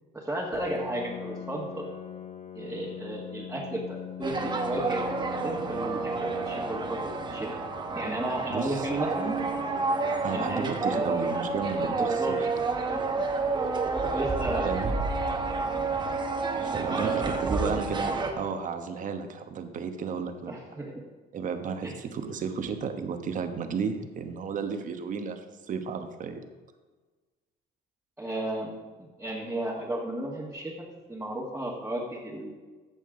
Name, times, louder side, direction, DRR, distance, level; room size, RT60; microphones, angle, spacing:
voice 1, 0.1-1.8 2.6-7.5 8.0-9.4 10.3-11.3 12.0-12.4 12.9-13.0 14.1-14.7 16.9-17.8 20.5-21.0 21.8-21.9 28.2-28.7 29.0-30.7 31.1-32.5, right 1 dB, 10° right, -6 dB, 1.7 m, -33 dB
Piano, 0.5-15.9, left 9 dB, 40° left, 0.8 m, -44 dB
sound 1, 4.2-18.3, right 4 dB, 25° right, 1.3 m, -30 dB
voice 2, 8.5-8.9 10.2-12.4 14.6-14.9 16.6-20.5 21.3-25.4 25.7-26.4, right 6 dB, 50° right, 7 dB, 1.1 m, -33 dB
14.0 x 6.9 x 3.8 m, 1.3 s
cardioid pair, 110°, 17 cm